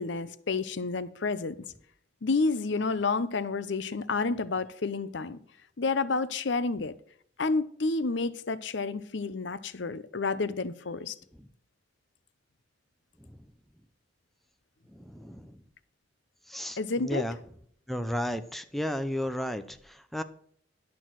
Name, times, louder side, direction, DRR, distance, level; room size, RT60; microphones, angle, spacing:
voice 1, 0.0-1.6 2.2-5.4 5.8-6.9 7.4-11.2 16.8-17.3, left 3 dB, 65° left, 0.7 m, -30 dB
voice 2, 14.9-15.6 16.5-17.4 17.9-20.2, equal, ahead, 0.7 m, -34 dB
11.0 x 6.2 x 6.2 m
head